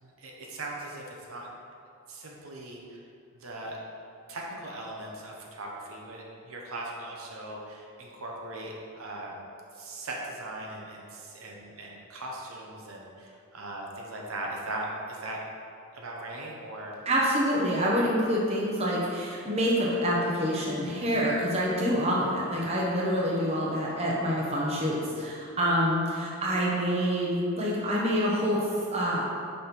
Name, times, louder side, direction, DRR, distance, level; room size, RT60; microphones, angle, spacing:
voice 1, 0.0-1.5 2.1-3.0 3.3-3.8 4.3-9.5 9.7-15.4 15.9-17.0, right 2 dB, 70° right, -1 dB, 0.8 m, -39 dB
voice 2, 17.1-29.2, equal, 30° right, -4 dB, 0.8 m, -27 dB
5.2 x 4.2 x 4.4 m, 2.6 s
head